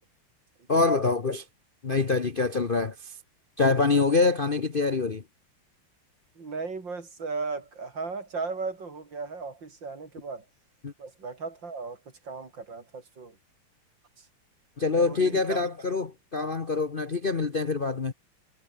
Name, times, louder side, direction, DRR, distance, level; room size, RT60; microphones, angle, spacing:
voice 1, 0.7-1.4 1.8-3.1 3.6-5.2 10.8-10.9 14.8-18.1, left 3 dB, 35° left, 1.0 m, -25 dB
voice 2, 6.4-10.4 11.0-12.0 12.2-13.4 14.2-14.3 14.9-15.7, right 4 dB, 60° right, 4.2 m, -36 dB
omnidirectional pair, 2.3 m